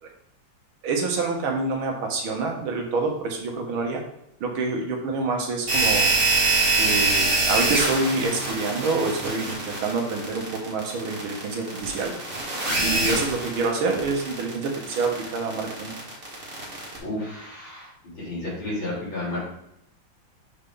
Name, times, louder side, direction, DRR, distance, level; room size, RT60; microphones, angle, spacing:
voice 1, 0.8-4.0 4.4-6.1 6.8-12.1 12.8-15.9, right 3 dB, 75° right, 1 dB, 1.9 m, -27 dB
sound 1, 5.7-17.0, right 3 dB, 35° right, 1.9 m, -24 dB
voice 2, 12.7-13.2 17.0-17.9 18.1-19.4, left 1 dB, 65° left, -6 dB, 3.8 m, -32 dB
6.8 x 4.8 x 3.8 m, 0.78 s
omnidirectional pair, 2.3 m